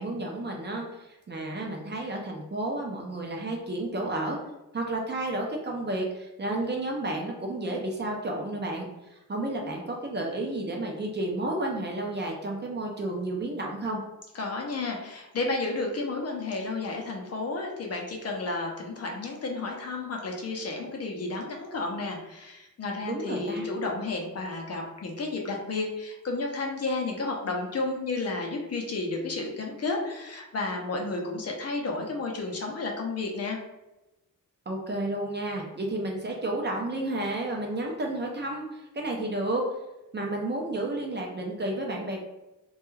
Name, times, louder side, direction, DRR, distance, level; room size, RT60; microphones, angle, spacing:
voice 1, 0.0-4.4 4.7-14.0 23.0-23.7 34.7-39.6 40.1-42.2, right 2 dB, 30° right, 0 dB, 0.4 m, -31 dB
voice 2, 14.3-33.6, left 3 dB, 45° left, 1 dB, 0.5 m, -32 dB
2.2 x 2.2 x 3.1 m, 0.98 s
wide cardioid pair, 130°, 34 cm